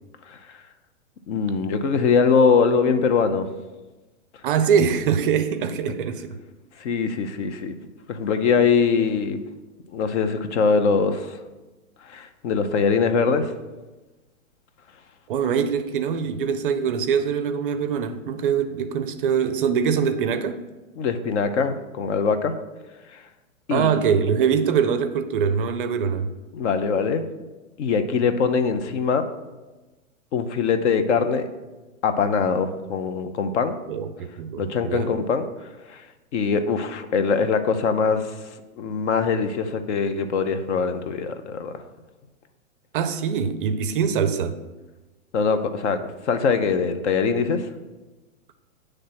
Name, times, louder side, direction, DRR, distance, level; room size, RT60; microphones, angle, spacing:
voice 1, 1.3-3.5 6.8-7.8 8.1-9.4 9.9-11.4 12.1-13.5 21.0-22.5 23.1-23.2 23.7-24.0 26.5-27.2 27.8-29.3 30.3-31.5 32.0-33.8 34.6-35.5 35.9-36.0 36.3-38.4 38.8-41.7 45.3-46.0 46.2-47.7, left 5 dB, 60° left, 9 dB, 0.7 m, -22 dB
voice 2, 4.4-6.4 15.3-20.6 23.7-26.3 33.9-35.1 42.9-44.6, right 7 dB, 45° right, 10 dB, 0.4 m, -23 dB
7.4 x 3.3 x 5.8 m, 1.2 s
hypercardioid pair, 130°, 40 cm